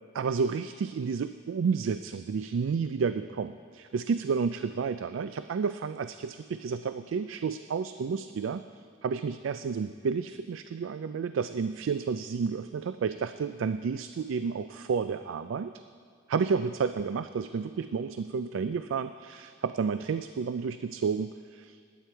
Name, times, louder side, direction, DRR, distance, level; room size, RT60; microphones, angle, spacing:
voice 1, 0.1-8.6 9.0-15.7 16.3-21.8, right 5 dB, 80° right, 11 dB, 0.4 m, -31 dB
20.0 x 9.2 x 4.5 m, 2.2 s
head